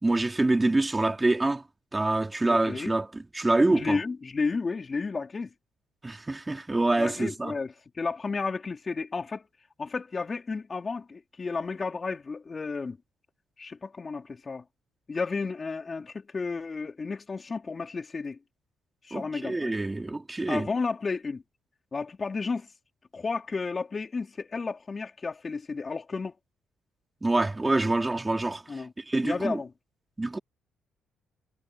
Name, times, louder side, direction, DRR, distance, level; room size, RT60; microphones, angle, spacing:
voice 1, 0.0-1.6 1.9-4.0 6.0-7.5 19.1-20.7 27.2-29.6 30.2-30.4, right 2 dB, 15° right, 3.5 m, -26 dB
voice 2, 2.4-2.9 3.7-5.5 7.0-9.5 9.8-13.0 13.6-14.6 15.1-18.4 19.0-19.7 20.5-21.4 21.9-22.7 23.1-26.3 28.7-28.9 29.2-29.7, left 4 dB, 35° left, 3.8 m, -32 dB
cardioid pair, 90°, 0 cm